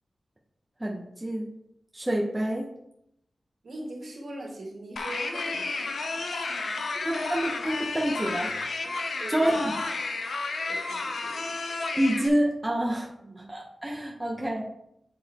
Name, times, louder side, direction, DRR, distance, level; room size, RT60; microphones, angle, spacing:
voice 1, 0.8-1.5 1.9-2.7 7.0-8.5 9.3-9.7 12.0-13.1 13.4-14.6, right 1 dB, 15° right, -1 dB, 0.9 m, -27 dB
voice 2, 3.6-6.7 6.9-7.0 8.8-9.5 10.7-11.8 13.2-13.5, right 1 dB, 65° right, -2 dB, 2.1 m, -42 dB
sound 1, 5.0-12.3, left 3 dB, 80° left, 0.7 m, -32 dB
8.0 x 4.1 x 4.2 m, 0.78 s
wide cardioid pair, 115°, 0 cm